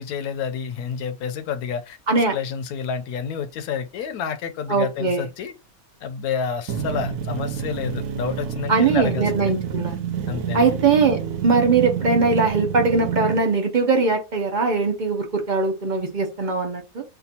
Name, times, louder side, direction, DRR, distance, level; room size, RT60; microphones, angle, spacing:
voice 1, 0.0-5.5 6.0-9.5 10.3-10.7, left 6 dB, 75° left, 1.1 m, -29 dB
voice 2, 4.7-5.2 8.7-10.0 10.5-17.0, right 4 dB, 45° right, 0.6 m, -21 dB
sound 1, 6.7-13.4, right 8 dB, 85° right, 1.2 m, -28 dB
6.6 x 2.3 x 2.7 m
omnidirectional pair, 1.6 m